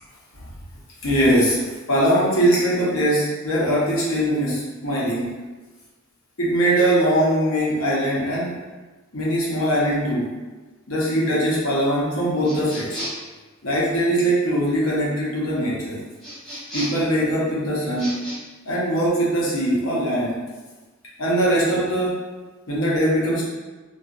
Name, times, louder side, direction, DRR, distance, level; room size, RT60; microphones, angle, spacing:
voice 1, 1.0-1.6 1.9-5.3 6.4-8.5 9.1-10.3 10.9-13.0 13.6-16.0 16.7-18.1 18.7-20.3 21.2-22.2 22.7-23.4, right 1 dB, 80° left, -7 dB, 0.9 m, -21 dB
sound 1, 12.4-13.3 16.2-17.1 17.9-18.4, equal, ahead, 1.0 m, -34 dB
2.7 x 2.4 x 2.4 m, 1.2 s
head